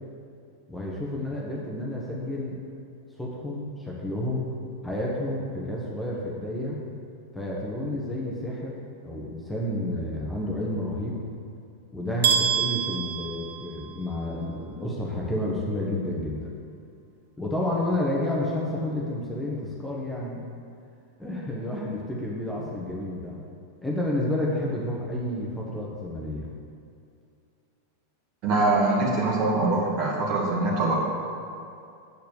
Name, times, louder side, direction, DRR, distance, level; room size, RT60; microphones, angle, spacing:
voice 1, 0.7-2.6 3.2-4.5 4.8-6.8 7.3-8.8 9.0-11.2 11.9-16.5 17.4-20.4 21.2-23.4 23.8-26.5, left 1 dB, 5° left, -5 dB, 1.3 m, -30 dB
sound 1, 12.2-14.2, right 8 dB, 60° right, 0.8 m, -26 dB
voice 2, 28.4-30.9, right 2 dB, 40° right, -4 dB, 2.2 m, -23 dB
7.9 x 4.6 x 7.2 m, 2.5 s
figure-of-eight pair, 90°, 0 cm